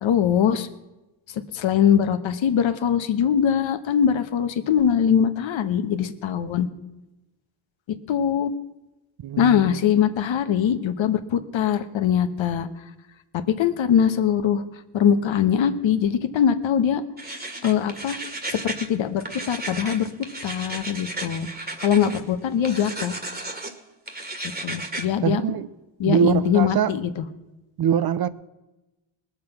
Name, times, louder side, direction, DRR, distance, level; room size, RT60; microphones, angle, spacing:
voice 1, 0.0-0.7 1.5-6.7 8.1-8.5 9.4-12.7 13.3-14.6 14.9-17.0 17.6-18.2 18.5-20.1 20.4-21.5 21.8-23.2 24.6-25.4 26.0-27.2, left 8 dB, 65° left, 9 dB, 1.2 m, -22 dB
voice 2, 9.2-9.8 25.2-25.7 26.0-26.9 27.8-28.3, right 8 dB, 50° right, 15 dB, 0.7 m, -23 dB
sound 1, 17.2-18.9 19.2-22.2 22.6-23.7 24.1-25.1, right 2 dB, 20° right, 1.9 m, -34 dB
20.0 x 7.4 x 5.8 m, 1.0 s
cardioid pair, 75°, 49 cm